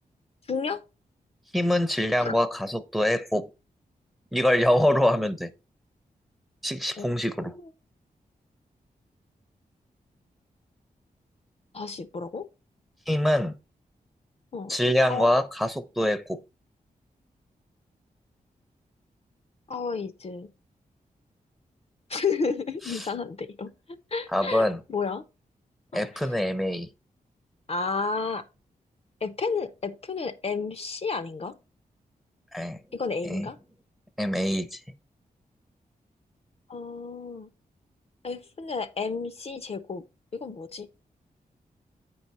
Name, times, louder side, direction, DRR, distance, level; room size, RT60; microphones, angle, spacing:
voice 1, 0.5-0.8 2.2-2.4 7.0-7.1 7.6-7.7 11.7-12.5 14.5-14.7 15.1-15.3 19.7-20.5 22.1-25.3 25.9-26.3 27.7-28.5 29.2-31.6 32.9-33.6 36.7-37.5 38.2-40.0 40.3-40.9, left 4 dB, 45° left, 0.6 m, -32 dB
voice 2, 1.5-3.5 4.3-5.5 6.6-7.5 13.1-13.5 14.7-16.4 22.9-23.1 24.3-24.8 25.9-26.9 32.5-32.8 33.2-33.5 34.2-34.8, left 1 dB, ahead, 0.6 m, -24 dB
8.7 x 4.7 x 4.1 m
wide cardioid pair, 95°, 15 cm